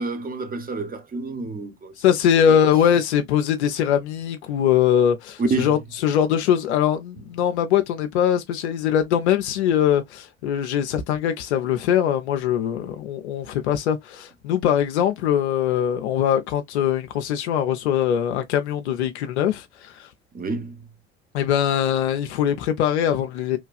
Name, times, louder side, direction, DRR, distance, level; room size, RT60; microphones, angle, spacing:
voice 1, 0.0-1.9 2.5-2.6 5.4-5.7 20.3-20.8, right 3 dB, 25° right, 0.9 m, -28 dB
voice 2, 2.0-20.1 21.3-23.6, left 9 dB, 75° left, 0.5 m, -22 dB
3.1 x 2.3 x 2.3 m
figure-of-eight pair, 60°, 34 cm